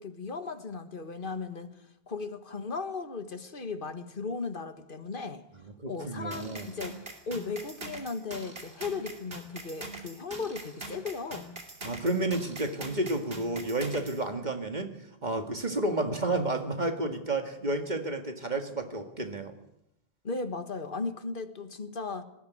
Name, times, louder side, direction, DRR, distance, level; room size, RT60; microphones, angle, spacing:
voice 1, 0.0-1.7 2.1-5.4 5.9-7.0 7.3-11.5 20.2-22.2, left 4 dB, 55° left, 1.8 m, -36 dB
voice 2, 5.8-6.7 11.8-15.0 15.2-19.5, right 2 dB, 45° right, 2.1 m, -31 dB
sound 1, 6.3-14.2, right 2 dB, 65° right, 3.3 m, -43 dB
19.5 x 15.5 x 9.4 m
omnidirectional pair, 1.1 m